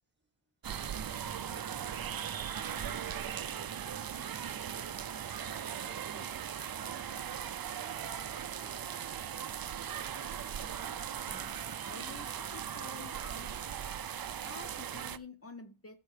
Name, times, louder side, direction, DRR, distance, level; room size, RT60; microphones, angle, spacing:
sound 1, 0.6-15.2, right 9 dB, 50° right, 0.5 m, -39 dB
voice 1, 1.0-5.2 5.7-9.1, right 3 dB, 20° right, 1.6 m, -58 dB
voice 2, 11.3-13.5 14.4-16.0, left 3 dB, 30° left, 0.7 m, -49 dB
13.0 x 7.6 x 3.3 m
wide cardioid pair, 115°, 49 cm